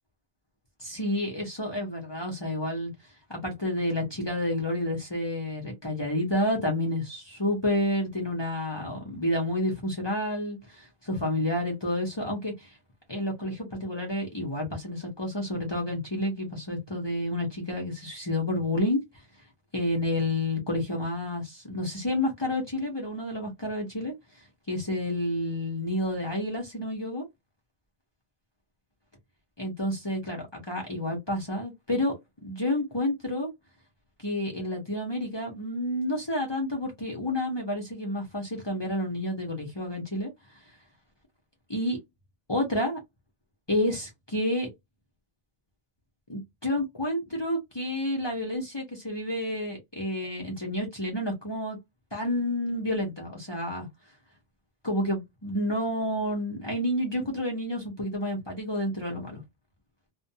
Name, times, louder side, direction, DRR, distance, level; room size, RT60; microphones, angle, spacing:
voice 1, 0.8-2.9 3.3-12.7 13.1-19.0 19.7-24.1 24.7-27.3 29.6-32.1 32.4-33.5 34.2-40.3 41.7-42.0 42.5-43.0 43.7-44.7 46.3-51.8 52.1-53.9 54.8-59.4, left 1 dB, 25° left, 0.8 m, -30 dB
2.4 x 2.2 x 2.7 m
omnidirectional pair, 1.0 m